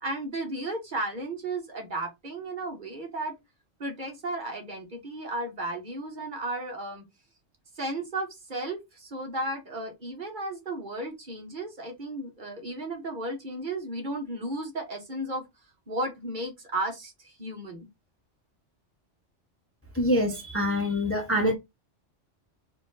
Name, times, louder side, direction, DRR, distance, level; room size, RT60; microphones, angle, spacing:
voice 1, 0.0-3.3 3.8-7.0 7.7-15.4 15.9-17.9, right 2 dB, 40° right, 1.3 m, -34 dB
voice 2, 19.9-21.5, left 1 dB, 15° left, 0.7 m, -25 dB
4.3 x 2.6 x 4.0 m
omnidirectional pair, 1.3 m